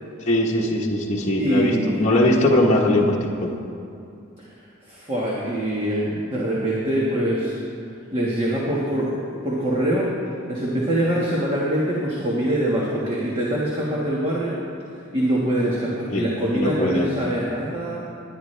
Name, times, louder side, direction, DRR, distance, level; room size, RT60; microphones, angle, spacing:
voice 1, 0.3-3.5 16.1-16.3 16.5-17.1, left 1 dB, 30° left, -4 dB, 1.2 m, -20 dB
voice 2, 1.4-2.0 4.4-4.5 4.9-7.6 8.1-9.1 9.4-10.1 10.5-14.6 15.1-18.0, right 1 dB, 25° right, -6 dB, 1.6 m, -24 dB
21.0 x 10.5 x 3.4 m, 2.6 s
head